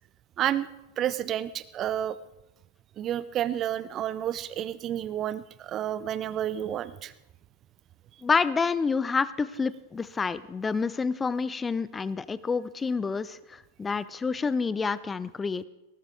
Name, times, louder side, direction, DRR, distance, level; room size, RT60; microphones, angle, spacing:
voice 1, 0.4-0.7 1.0-2.2 3.0-7.1, right 11 dB, 30° right, 15 dB, 0.7 m, -30 dB
voice 2, 8.2-15.7, left 5 dB, 15° left, 17 dB, 0.6 m, -28 dB
20.0 x 18.0 x 3.6 m, 0.95 s
figure-of-eight pair, 90°, 0 cm